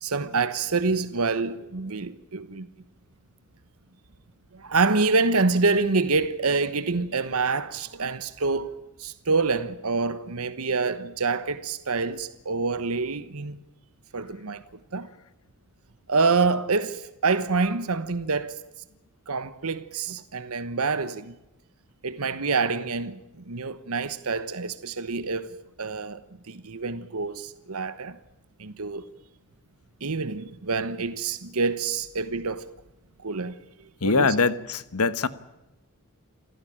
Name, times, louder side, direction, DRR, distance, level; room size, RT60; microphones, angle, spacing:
voice 1, 0.0-2.7 4.5-13.6 14.1-14.6 14.9-15.1 16.1-18.6 19.3-21.3 22.0-23.2 23.5-26.2 26.5-28.2 28.6-29.0 30.0-32.7 33.2-33.6 34.0-34.3, right 4 dB, 80° right, 1.1 m, -26 dB
voice 2, 34.0-35.3, left 4 dB, 85° left, 1.3 m, -23 dB
28.0 x 15.5 x 8.8 m
head